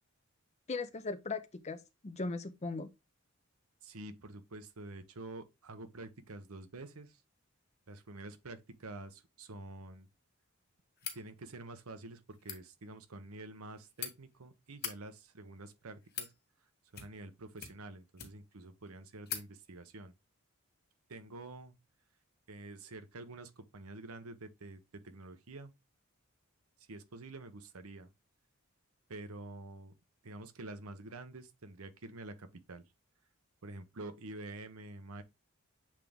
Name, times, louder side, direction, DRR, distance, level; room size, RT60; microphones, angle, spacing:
voice 1, 0.7-2.9, left 3 dB, 30° left, 0.6 m, -38 dB
voice 2, 3.8-7.2 7.9-10.1 11.1-16.3 16.9-20.1 21.1-21.7 22.5-25.7 26.9-28.1 29.1-29.9 30.2-32.8 33.6-35.2, right 2 dB, 90° right, 0.9 m, -48 dB
sound 1, 11.0-11.2 12.3-12.6 13.6-14.1 14.7-14.9 15.7-16.3 16.9-17.3 17.6-18.5 18.9-19.0 19.2-19.5, left 8 dB, 45° left, 1.6 m, -42 dB
7.4 x 3.6 x 3.4 m
head